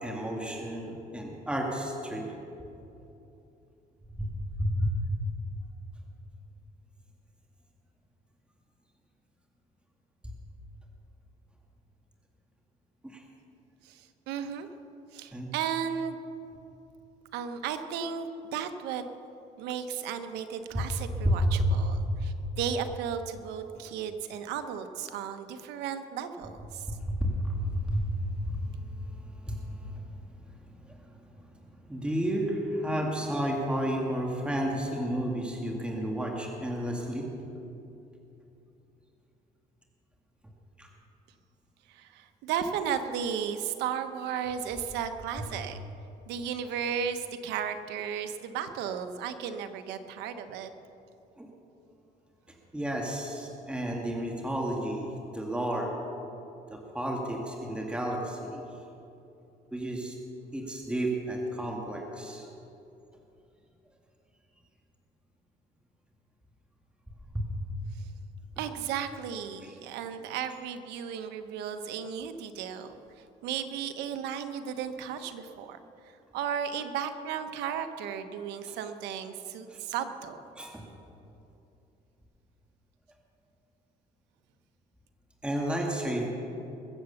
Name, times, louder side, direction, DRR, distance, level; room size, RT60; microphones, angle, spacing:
voice 1, 0.0-2.3 4.2-4.3 4.6-4.9 13.0-13.2 15.3-15.5 21.2-21.7 22.0-22.3 27.1-28.1 28.5-28.7 29.2-30.0 30.8-31.0 31.9-37.3 40.8-40.9 51.4-51.5 52.7-55.9 56.7-58.6 59.7-60.2 60.5-62.5 67.3-67.5 69.6-69.7 78.7-78.8 79.7-79.8 80.5-80.8 85.4-86.3, equal, 5° right, 0 dB, 2.1 m, -31 dB
voice 2, 13.8-14.7 15.1-16.2 17.3-19.0 19.6-26.9 41.9-45.8 46.3-50.7 68.6-72.9 73.4-75.8 76.3-80.4, right 8 dB, 90° right, 8 dB, 1.1 m, -34 dB
22.0 x 7.9 x 7.1 m, 2.8 s
cardioid pair, 110°, 17 cm